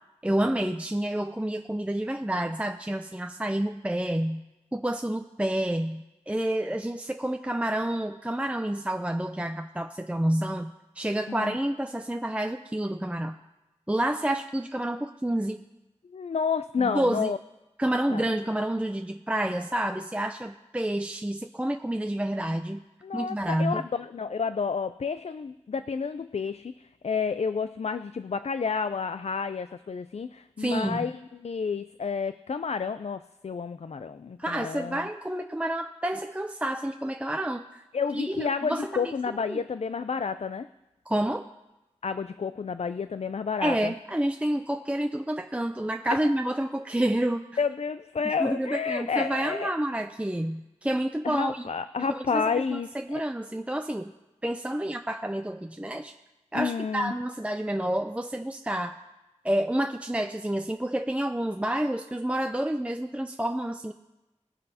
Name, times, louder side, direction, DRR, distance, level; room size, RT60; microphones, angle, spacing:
voice 1, 0.2-4.4 4.7-13.4 13.9-15.6 16.8-17.3 17.8-22.8 23.1-23.8 30.6-31.0 34.4-37.8 38.1-39.1 39.5-39.6 41.1-41.4 43.6-47.5 48.4-51.7 52.1-54.1 54.4-56.2 56.5-59.0 59.4-63.9, right 1 dB, 10° right, 5 dB, 0.5 m, -29 dB
voice 2, 16.1-17.4 18.1-18.2 23.0-26.7 27.0-35.0 37.9-40.7 42.0-43.9 46.0-46.3 47.6-49.7 51.2-53.2 56.5-57.1, left 5 dB, 65° left, 11 dB, 0.4 m, -30 dB
20.0 x 9.5 x 2.8 m, 0.98 s
wide cardioid pair, 55°, 12 cm